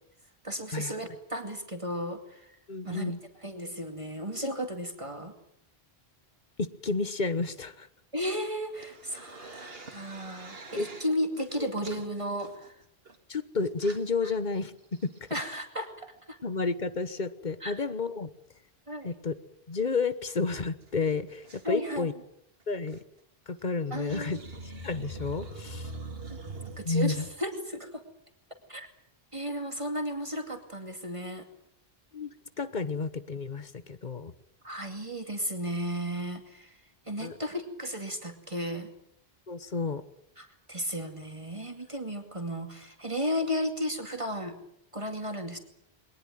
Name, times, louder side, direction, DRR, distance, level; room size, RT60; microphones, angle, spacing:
voice 1, 0.4-2.6 2.8-3.1 3.4-5.3 8.1-12.8 15.3-16.4 17.6-17.8 18.9-19.1 21.6-22.1 23.9-24.4 26.3-26.4 26.8-28.0 28.7-28.9 29.3-31.5 34.6-36.8 37.1-38.9 40.4-44.6 44.9-45.6, equal, 30° right, 5 dB, 2.5 m, -34 dB
voice 2, 2.7-3.2 6.6-7.9 10.8-10.9 13.3-15.1 16.4-18.3 19.0-19.3 19.7-22.1 22.7-23.0 23.5-24.4 24.6-25.9 26.8-27.3 32.1-34.3 37.2-37.4 39.5-40.0, left 4 dB, 50° left, 14 dB, 1.3 m, -31 dB
sound 1, 8.7-11.1 11.4-13.2 13.7-14.0 14.6-14.7 14.9-15.6 17.7-17.9 19.7-19.8 20.1-20.2 20.4-20.5 20.8-21.7 22.7-23.0 23.9-27.3, right 2 dB, 70° right, 2.4 m, -44 dB
22.0 x 19.5 x 9.3 m, 0.75 s
omnidirectional pair, 1.0 m